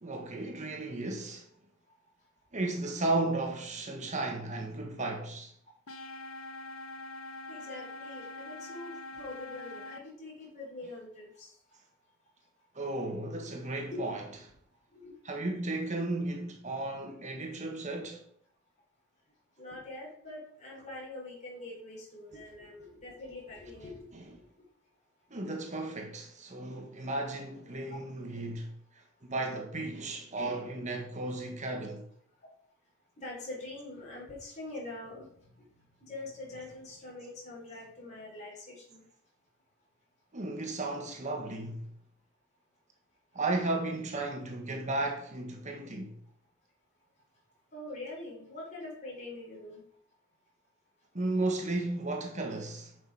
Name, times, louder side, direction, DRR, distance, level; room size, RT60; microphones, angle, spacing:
voice 1, 0.0-1.5 2.5-5.5 12.7-14.2 15.2-18.2 24.1-24.4 25.3-32.0 40.3-41.9 43.3-46.2 51.1-52.9, right 2 dB, 35° right, 1.5 m, -34 dB
sound 1, 5.9-10.0, left 2 dB, 80° left, 1.1 m, -44 dB
voice 2, 7.5-11.5 13.9-14.1 14.9-15.1 19.6-24.1 27.9-28.0 33.2-35.6 36.0-39.0 47.7-49.8, left 2 dB, 35° left, 4.1 m, -44 dB
10.0 x 6.6 x 4.9 m
head